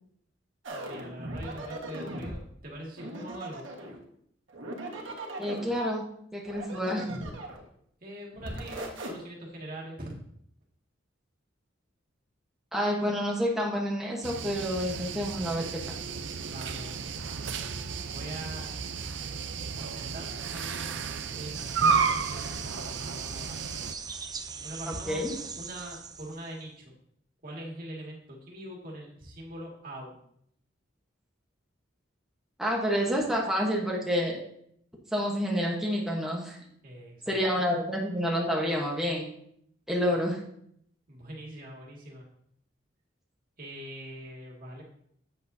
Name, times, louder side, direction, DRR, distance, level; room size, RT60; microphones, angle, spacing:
sound 1, 0.6-2.4 3.0-4.0 4.5-5.8 6.4-7.7 8.3-9.1, right 1 dB, 85° right, 1.5 m, -38 dB
voice 1, 0.7-3.7 8.0-10.1 16.5-17.0 18.1-18.7 19.8-21.0 21.3-21.6 22.0-23.6 24.6-25.2 25.6-26.9 27.4-30.1 36.8-37.7 41.1-42.2 43.6-44.8, right 1 dB, 50° right, -2 dB, 2.1 m, -43 dB
voice 2, 5.4-6.0 6.3-7.1 12.7-15.9 25.1-25.3 32.6-34.4 35.1-36.6 37.3-39.3 39.9-40.4, equal, ahead, -3 dB, 1.1 m, -28 dB
sound 2, 14.2-23.9, right 5 dB, 70° right, 0.6 m, -32 dB
sound 3, 21.5-26.6, right 5 dB, 20° right, 0.5 m, -41 dB
8.6 x 7.7 x 2.7 m, 0.70 s
head